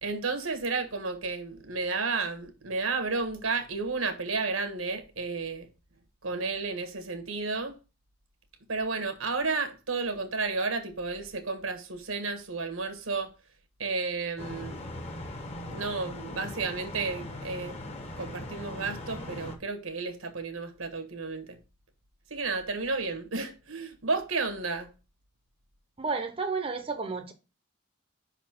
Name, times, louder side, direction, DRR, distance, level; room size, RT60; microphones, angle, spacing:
voice 1, 0.0-5.7 6.2-7.7 8.7-13.3 13.8-14.8 15.7-17.8 18.2-21.6 22.3-24.9, right 4 dB, 85° right, 1.4 m, -32 dB
sound 1, 14.4-19.6, left 1 dB, 30° left, 1.1 m, -40 dB
voice 2, 26.0-27.3, right 4 dB, 25° right, 0.7 m, -31 dB
5.6 x 4.2 x 5.8 m
head